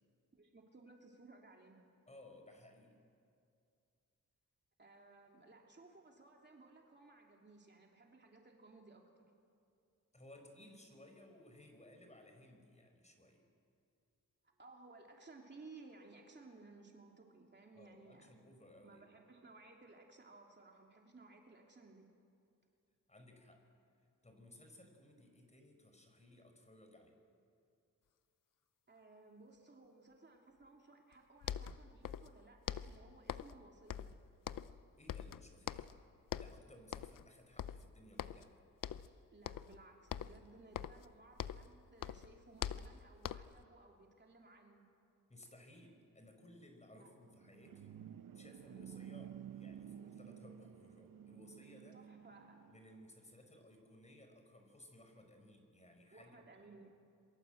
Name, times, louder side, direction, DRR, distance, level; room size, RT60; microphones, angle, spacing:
voice 1, 0.3-1.8 4.8-9.1 14.6-18.3 18.8-22.1 28.9-34.2 39.3-44.9 46.9-47.1 51.9-52.6 56.1-56.9, right 3 dB, 30° right, 0 dB, 3.0 m, -59 dB
voice 2, 2.1-3.0 10.1-13.4 17.7-19.0 23.1-23.7 24.2-27.2 35.0-35.9 36.4-38.5 45.3-52.0 52.7-56.5, left 1 dB, 20° left, 4 dB, 5.0 m, -60 dB
sound 1, 31.1-31.2 31.4-32.4 32.7-33.6 33.9-34.8 35.1-36.0 36.3-36.6 36.9-37.3 37.6-38.5 38.8-39.1 39.4-39.8 40.1-41.7 42.0-43.6, left 10 dB, 75° left, 0.7 m, -44 dB
sound 2, 47.2-52.8, right 9 dB, 80° right, 0.9 m, -52 dB
27.5 x 23.0 x 8.0 m, 2.4 s
cardioid pair, 95°, 33 cm